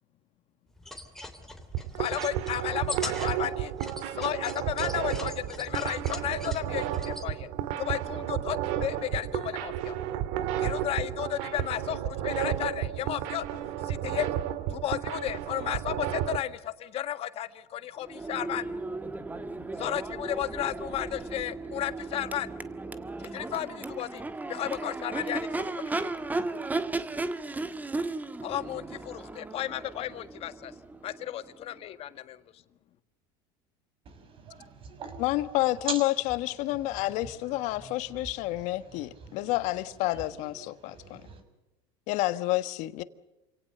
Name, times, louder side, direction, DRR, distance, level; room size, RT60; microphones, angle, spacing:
sound 1, 0.8-7.3, left 1 dB, 5° left, 3.1 m, -42 dB
sound 2, 1.6-16.4, right 11 dB, 70° right, 1.9 m, -32 dB
voice 1, 2.0-3.7 4.0-7.5 7.8-10.0 10.6-13.4 13.8-14.3 14.7-18.6 19.8-22.5 23.2-24.2 24.5-26.1 28.4-30.7 31.0-32.6, left 12 dB, 45° left, 1.6 m, -33 dB
Crowd / Race car auto racing / Accelerating revving vroom, 18.0-31.8, right 3 dB, 10° right, 1.5 m, -35 dB
voice 2, 34.0-41.4, right 5 dB, 40° right, 6.0 m, -44 dB
voice 3, 35.2-36.1 36.4-41.2 42.1-43.0, left 17 dB, 65° left, 1.4 m, -29 dB
28.0 x 18.0 x 6.7 m
supercardioid pair, 115°, 13 cm